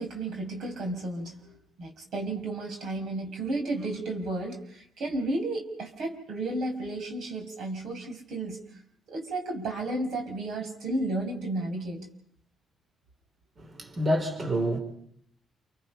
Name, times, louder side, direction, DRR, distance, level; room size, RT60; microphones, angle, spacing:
voice 1, 0.0-8.6 9.1-12.0, right 2 dB, 65° right, 4 dB, 5.6 m, -33 dB
voice 2, 13.6-14.8, equal, 40° right, 5 dB, 4.2 m, -28 dB
28.5 x 25.0 x 5.7 m, 0.67 s
cardioid pair, 90°, 0 cm